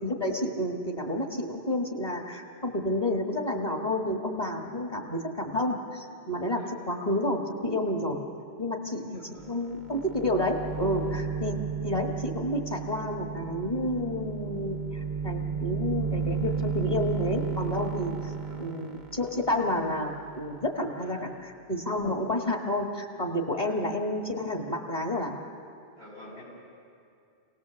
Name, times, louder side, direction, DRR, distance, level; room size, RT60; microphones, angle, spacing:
voice 1, 0.0-8.2 8.6-18.3 18.6-21.2 21.7-25.3, left 1 dB, 35° left, 1 dB, 1.7 m, -30 dB
voice 2, 8.9-9.5 18.1-18.6 21.0-21.2 23.5-23.8 26.0-26.4, left 1 dB, 80° left, -5 dB, 7.4 m, -49 dB
sound 1, 9.4-9.5 9.8-20.9, right 6 dB, 45° right, 1.1 m, -34 dB
27.5 x 18.5 x 7.1 m, 2.5 s
omnidirectional pair, 1.1 m